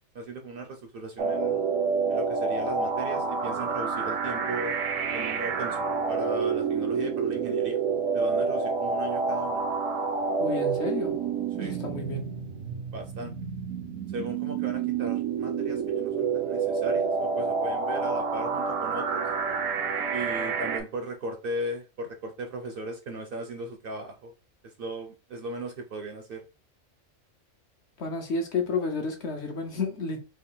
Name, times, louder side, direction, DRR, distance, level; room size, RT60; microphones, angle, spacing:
voice 1, 0.1-1.6 2.1-4.8 5.1-7.8 8.1-9.6 11.6-11.8 12.9-13.3 14.1-19.2 20.1-24.3 24.6-26.4, right 2 dB, 55° right, 0.7 m, -37 dB
sound 1, 1.2-20.8, right 5 dB, 80° right, 1.0 m, -28 dB
voice 2, 10.4-11.1 11.6-12.2 28.0-30.2, left 4 dB, 65° left, 1.1 m, -31 dB
3.3 x 2.4 x 3.7 m
omnidirectional pair, 1.3 m